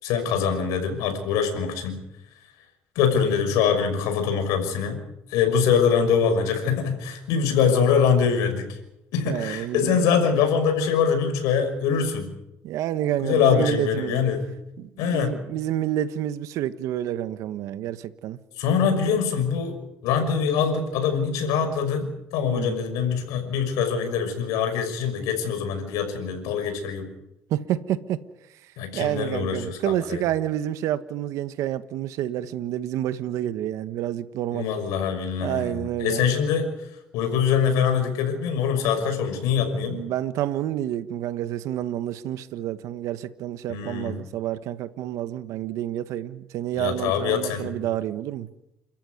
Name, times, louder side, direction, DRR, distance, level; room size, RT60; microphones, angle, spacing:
voice 1, 0.0-2.0 2.9-5.0 5.3-8.8 9.1-12.3 13.2-14.4 15.0-15.3 18.6-19.8 20.0-27.1 28.8-30.2 34.5-36.7 37.1-40.0 43.7-44.2 46.7-47.7, left 7 dB, 90° left, 6 dB, 6.0 m, -23 dB
voice 2, 9.2-10.0 12.6-14.3 14.8-18.4 22.5-22.8 27.5-28.2 28.9-34.7 35.4-36.2 39.7-48.5, right 12 dB, 75° right, 12 dB, 1.4 m, -29 dB
29.5 x 14.0 x 9.5 m, 0.88 s
cardioid pair, 115°, 5 cm